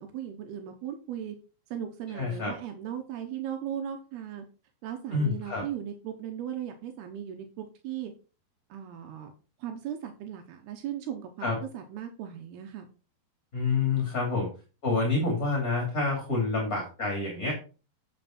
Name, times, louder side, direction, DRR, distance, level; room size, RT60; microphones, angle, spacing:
voice 1, 0.0-1.4 1.7-4.4 4.8-8.1 8.7-9.3 9.6-12.9, right 10 dB, 85° right, 5 dB, 3.0 m, -37 dB
voice 2, 2.1-2.5 5.1-5.6 11.4-11.6 13.5-14.5 14.8-17.5, left 3 dB, 25° left, 0 dB, 2.4 m, -28 dB
9.1 x 6.0 x 4.4 m, 0.34 s
omnidirectional pair, 4.5 m